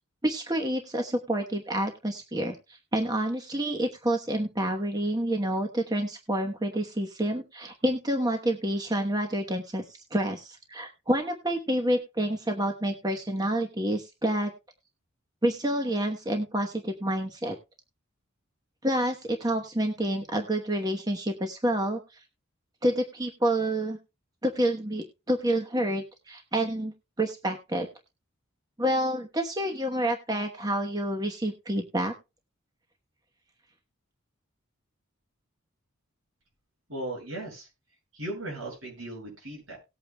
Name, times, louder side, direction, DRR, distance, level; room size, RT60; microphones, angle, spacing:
voice 1, 0.2-2.6 2.9-14.5 15.4-17.6 18.8-22.0 22.8-24.0 24.4-27.9 28.8-32.1, right 1 dB, 20° right, 4 dB, 1.0 m, -28 dB
voice 2, 36.9-37.7 38.1-39.8, right 1 dB, 80° right, -1 dB, 7.2 m, -37 dB
18.5 x 8.6 x 2.2 m, 0.27 s
head